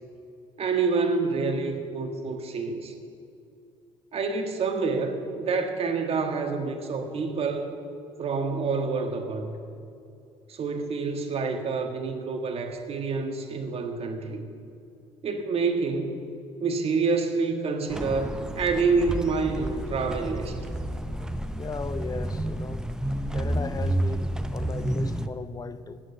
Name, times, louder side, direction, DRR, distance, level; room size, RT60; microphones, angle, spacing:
voice 1, 0.6-2.9 4.1-7.7 8.2-9.6 10.5-14.5 15.2-16.1 16.6-20.5, right 4 dB, 50° right, 1.6 m, -27 dB
sound 1, 17.9-25.3, right 1 dB, 5° right, 0.7 m, -30 dB
voice 2, 21.6-22.8 23.1-26.0, left 4 dB, 30° left, 0.7 m, -37 dB
9.5 x 9.1 x 7.7 m
hypercardioid pair, 55°, 13 cm